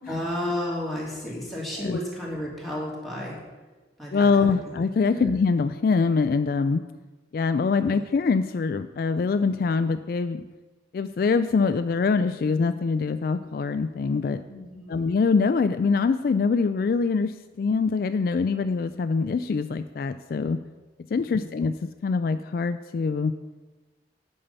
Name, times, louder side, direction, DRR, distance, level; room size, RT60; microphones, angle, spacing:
voice 1, 0.1-3.4 4.0-4.6 5.1-5.3 7.8-8.0 14.4-15.0 21.1-21.5, left 1 dB, ahead, -5 dB, 2.2 m, -33 dB
voice 2, 4.1-6.8 7.3-10.4 10.9-14.4 14.9-20.6 21.1-21.8 22.0-23.3, left 4 dB, 55° left, 10 dB, 0.3 m, -24 dB
8.9 x 5.4 x 6.7 m, 1.2 s
head